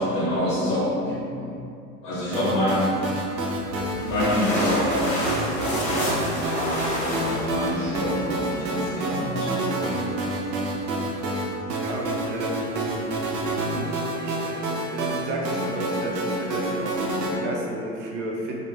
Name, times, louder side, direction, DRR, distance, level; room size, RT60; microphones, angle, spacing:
voice 1, 0.0-1.6 2.0-3.0 4.0-9.7, left 1 dB, 40° left, -8 dB, 0.9 m, -27 dB
sound 1, 2.3-17.3, right 1 dB, 80° right, 0.7 m, -28 dB
sound 2, 3.6-8.6, equal, 15° left, 0.5 m, -29 dB
voice 2, 11.8-13.1 13.6-18.6, right 1 dB, 50° right, -1 dB, 0.7 m, -32 dB
3.1 x 2.1 x 3.3 m, 2.5 s
hypercardioid pair, 90°, 49 cm